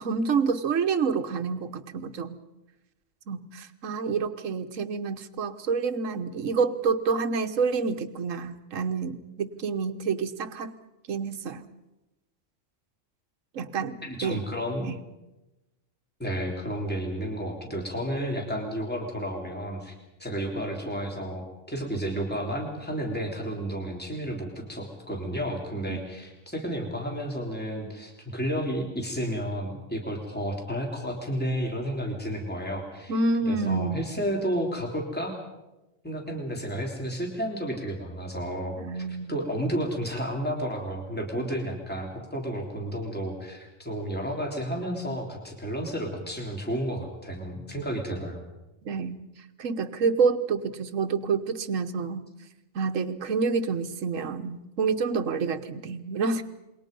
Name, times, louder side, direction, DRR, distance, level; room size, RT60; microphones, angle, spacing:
voice 1, 0.0-2.4 3.3-10.7 11.1-11.6 13.5-14.5 14.8-14.9 25.9-26.0 33.1-34.0 38.8-39.3 48.8-49.2 49.6-52.3 52.7-56.4, right 5 dB, 75° right, 8 dB, 1.5 m, -28 dB
voice 2, 14.0-14.9 16.2-19.9 20.2-33.1 33.5-35.3 36.0-48.4, equal, 5° left, 0 dB, 3.5 m, -32 dB
27.5 x 22.0 x 5.3 m, 1.0 s
omnidirectional pair, 1.4 m